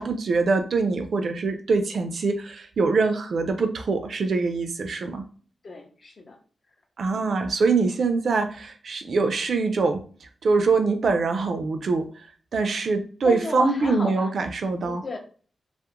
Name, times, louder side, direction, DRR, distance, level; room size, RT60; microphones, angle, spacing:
voice 1, 0.0-5.2 7.0-10.0 10.4-12.1 12.5-15.0, right 4 dB, 65° right, 7 dB, 0.3 m, -24 dB
voice 2, 5.6-6.4 7.1-7.4 13.2-14.3 14.8-15.2, left 3 dB, 45° left, 3 dB, 0.5 m, -34 dB
2.3 x 2.0 x 2.8 m, 0.42 s
wide cardioid pair, 120°, 0 cm